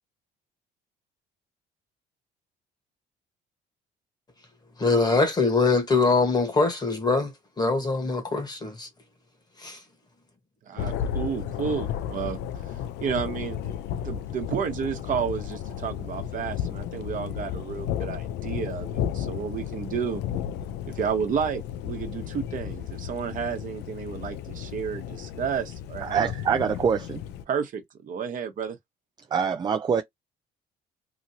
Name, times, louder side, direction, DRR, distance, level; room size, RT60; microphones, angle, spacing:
voice 1, 4.8-7.3 7.6-8.9 9.6-9.8, left 3 dB, 25° left, 1.2 m, -23 dB
voice 2, 10.7-12.4 12.7-13.6 14.0-20.2 20.9-26.3 27.5-28.8, right 7 dB, 50° right, 1.0 m, -31 dB
Thunder, 10.8-27.4, left 9 dB, 80° left, 0.4 m, -33 dB
voice 3, 26.0-27.2 29.3-30.0, right 6 dB, 25° right, 0.3 m, -24 dB
2.9 x 2.6 x 2.7 m
cardioid pair, 110°, 17 cm